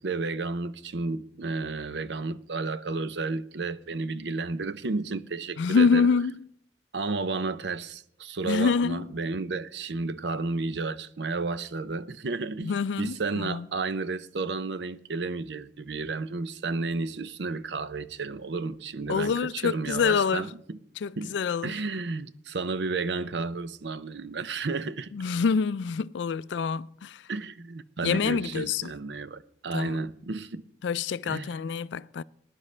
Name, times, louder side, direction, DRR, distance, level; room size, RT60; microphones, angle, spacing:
voice 1, 0.0-6.1 6.9-20.8 21.2-21.4 21.6-25.1 27.3-30.6 31.2-31.5, right 3 dB, 75° right, 0.6 m, -32 dB
voice 2, 5.6-6.4 8.4-9.1 12.6-13.6 19.1-20.5 21.0-21.7 25.1-27.2 28.0-28.9 29.7-30.0 30.8-32.2, left 5 dB, 90° left, 0.4 m, -26 dB
20.5 x 10.5 x 3.3 m
head